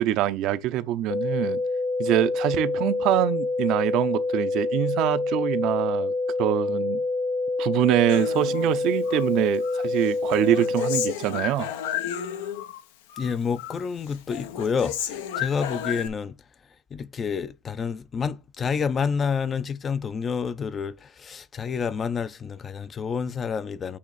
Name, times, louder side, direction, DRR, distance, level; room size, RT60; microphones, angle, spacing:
voice 1, 0.0-1.6 2.0-6.1 6.4-7.0 7.6-11.7, right 13 dB, 50° right, 0.7 m, -24 dB
sound 1, 1.1-11.1, left 3 dB, 50° left, 1.3 m, -27 dB
Human voice, 8.1-9.3 9.6-12.8 13.1-13.8 14.1-16.1, left 10 dB, 75° left, 0.9 m, -33 dB
voice 2, 13.2-16.4 16.9-24.0, left 6 dB, 25° left, 0.5 m, -29 dB
8.5 x 3.0 x 4.2 m
supercardioid pair, 115°, 0 cm